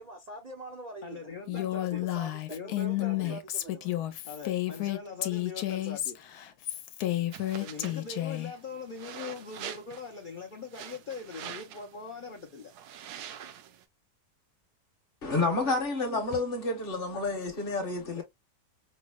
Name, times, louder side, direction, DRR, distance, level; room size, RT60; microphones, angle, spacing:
voice 1, 0.0-4.1, right 3 dB, 65° right, 0.4 m, -45 dB
voice 2, 1.0-2.1 2.5-3.4 4.2-6.2 7.6-12.7 17.1-17.3 18.0-18.2, left 5 dB, 70° left, 0.4 m, -41 dB
Female speech woman speaking, 1.5-8.5, left 15 dB, 90° left, 1.1 m, -31 dB
sound 1, 7.3-13.8, right 9 dB, 85° right, 1.1 m, -45 dB
voice 3, 15.2-18.2, left 3 dB, 45° left, 0.9 m, -29 dB
5.3 x 2.0 x 2.2 m
omnidirectional pair, 1.6 m